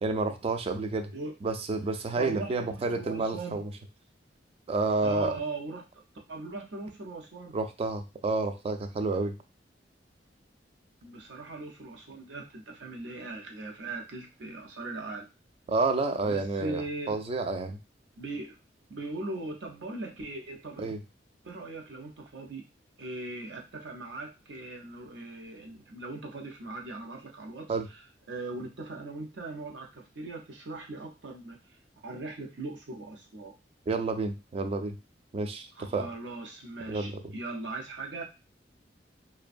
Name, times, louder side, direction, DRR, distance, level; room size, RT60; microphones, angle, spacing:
voice 1, 0.0-1.1 1.4-3.7 4.7-5.3 7.5-9.4 15.7-17.8 20.8-21.0 27.7-27.9 33.9-35.0 35.3-36.1 36.9-37.2, right 3 dB, 35° right, 7 dB, 0.3 m, -30 dB
voice 2, 2.2-3.6 5.0-6.0 6.3-7.6 11.0-15.3 16.2-17.2 18.2-18.6 18.9-20.9 21.4-22.6 23.0-28.0 28.3-31.6 32.0-33.5 35.7-38.2, right 3 dB, 85° right, 1 dB, 0.6 m, -39 dB
2.5 x 2.2 x 2.4 m, 0.27 s
head